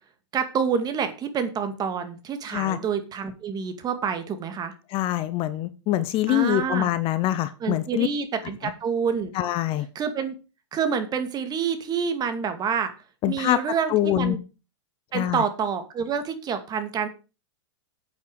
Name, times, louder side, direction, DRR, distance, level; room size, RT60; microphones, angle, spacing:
voice 1, 0.3-4.7 6.3-6.9 7.6-9.3 9.9-10.3 10.7-12.9 13.3-14.4 15.1-17.1, right 6 dB, 25° right, 2.1 m, -27 dB
voice 2, 4.9-8.1 9.3-9.9 13.2-13.6 13.9-14.4 15.1-15.4, left 14 dB, 35° left, 0.9 m, -24 dB
9.4 x 8.5 x 4.8 m
hypercardioid pair, 125°, 16 cm